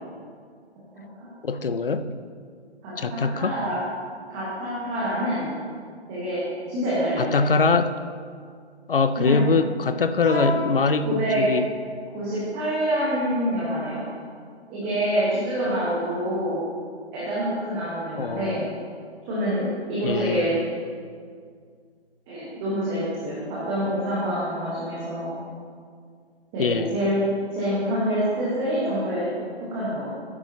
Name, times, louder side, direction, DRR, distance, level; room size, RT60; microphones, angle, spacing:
voice 1, 1.4-2.1 3.0-3.6 7.2-7.9 8.9-11.6 18.2-18.6 20.0-20.5 26.6-26.9, left 4 dB, 55° left, 11 dB, 0.6 m, -23 dB
voice 2, 2.8-3.7 4.3-5.5 6.1-6.4 6.7-7.5 9.2-9.4 10.2-10.7 11.0-11.5 12.1-14.0 14.7-16.6 17.1-18.6 19.3-20.5 22.3-25.3 26.5-27.2 27.5-29.3 29.7-30.1, equal, 10° right, -9 dB, 1.3 m, -26 dB
14.0 x 9.7 x 2.9 m, 2.1 s
figure-of-eight pair, 150°, 34 cm